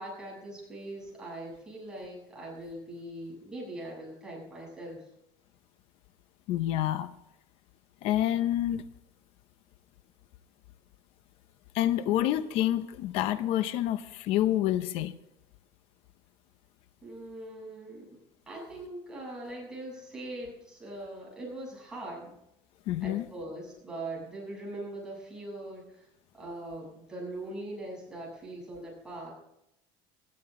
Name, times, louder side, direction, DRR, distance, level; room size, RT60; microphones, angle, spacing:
voice 1, 0.0-5.0 17.0-18.0 18.5-22.3 23.0-26.1 26.3-29.3, right 1 dB, 5° right, -4 dB, 7.8 m, -41 dB
voice 2, 6.5-7.1 8.0-8.9 11.7-15.1 22.9-23.2, left 13 dB, 55° left, 12 dB, 0.8 m, -28 dB
20.5 x 13.5 x 3.8 m, 0.82 s
cardioid pair, 165°, 12 cm